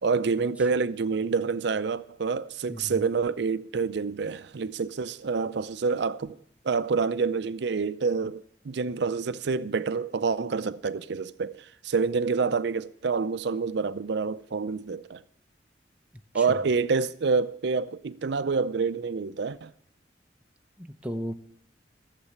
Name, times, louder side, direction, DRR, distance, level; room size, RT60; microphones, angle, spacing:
voice 1, 0.0-6.4 6.6-15.2 16.3-19.7, right 5 dB, 65° right, 0.5 m, -27 dB
voice 2, 2.7-3.0 16.3-16.4 20.8-21.3, equal, 5° right, 0.8 m, -35 dB
15.0 x 7.5 x 9.5 m
head